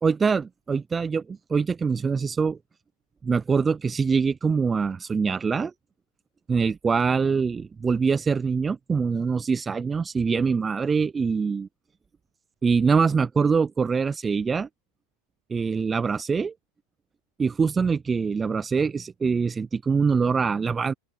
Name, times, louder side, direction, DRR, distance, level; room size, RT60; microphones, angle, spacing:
voice 1, 0.0-2.6 3.2-5.7 6.5-11.7 12.6-14.7 15.5-16.5 17.4-20.9, right 5 dB, 20° right, 0.3 m, -24 dB
open air
hypercardioid pair, 110°, 0 cm